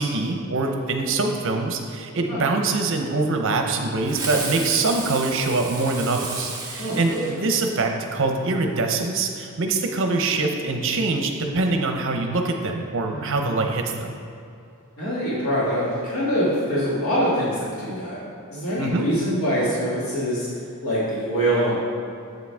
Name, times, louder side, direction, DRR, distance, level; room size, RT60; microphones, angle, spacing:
voice 1, 0.0-14.1 18.8-19.1, right 3 dB, 65° right, 3 dB, 0.7 m, -24 dB
Fireworks, 4.0-7.9, right 4 dB, 20° right, 1.4 m, -33 dB
voice 2, 6.8-7.3 13.1-13.4 15.0-18.2 18.5-20.5 20.8-21.8, equal, 75° left, -8 dB, 1.9 m, -24 dB
7.9 x 7.5 x 3.5 m, 2.5 s
head